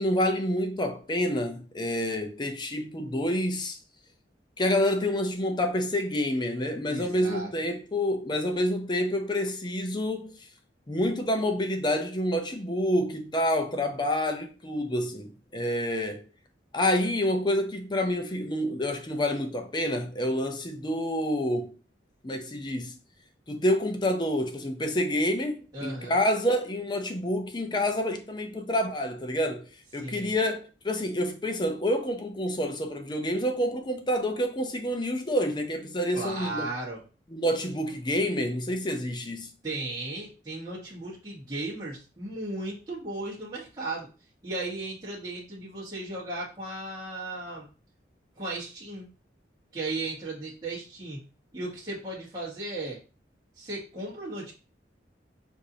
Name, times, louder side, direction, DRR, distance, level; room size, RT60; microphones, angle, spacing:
voice 1, 0.0-3.8 4.6-10.4 10.9-16.2 16.7-21.7 22.2-23.0 23.5-29.6 29.9-30.6 30.8-36.7 37.3-39.5, left 1 dB, 25° left, 0.6 m, -28 dB
voice 2, 6.9-7.5 25.7-26.1 30.0-30.3 36.1-37.0 39.6-44.1 44.4-47.7 48.4-49.1 49.7-51.2 51.5-53.0 53.6-54.5, right 2 dB, 25° right, 1.2 m, -36 dB
6.4 x 2.7 x 2.7 m
head